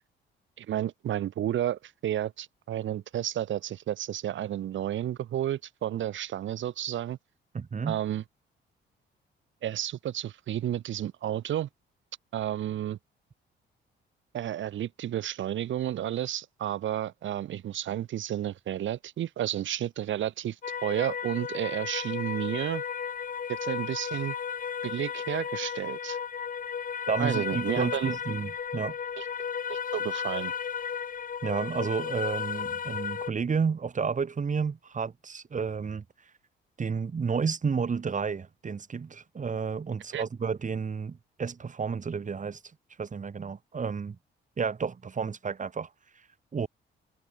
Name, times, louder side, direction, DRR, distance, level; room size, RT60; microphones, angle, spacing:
voice 1, 0.6-7.2 7.9-8.2 9.6-11.7 12.3-13.0 14.3-20.6 20.8-22.8 23.5-24.3 24.8-26.2 27.2-28.1 29.2-29.3 29.7-30.5 40.1-40.2, right 11 dB, 75° right, 4.9 m, -31 dB
voice 2, 7.5-8.0 27.1-29.0 31.4-36.0 36.8-42.6 43.0-44.2 44.6-45.9 46.5-46.7, right 5 dB, 40° right, 7.2 m, -31 dB
sound 1, 20.6-33.3, left 7 dB, 45° left, 1.6 m, -34 dB
cardioid pair, 90°, 20 cm